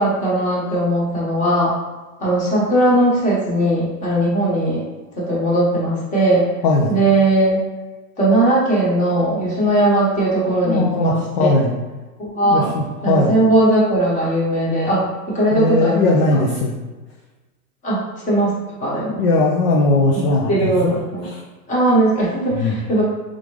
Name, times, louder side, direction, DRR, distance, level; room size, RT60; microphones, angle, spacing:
voice 1, 0.0-1.7 2.2-4.8 5.2-6.4 6.9-7.6 8.2-11.5 12.2-12.7 13.0-15.1 15.3-16.4 17.8-18.5 18.8-19.2 20.5-21.3 21.7-23.0, right 1 dB, 15° left, -6 dB, 1.1 m, -18 dB
voice 2, 6.6-7.0 10.7-11.7 12.4-13.4 15.5-16.8 19.2-20.9 21.2-21.4 22.5-22.8, left 2 dB, 40° left, -1 dB, 0.5 m, -18 dB
3.7 x 3.6 x 3.1 m, 1.2 s
hypercardioid pair, 150°, 49 cm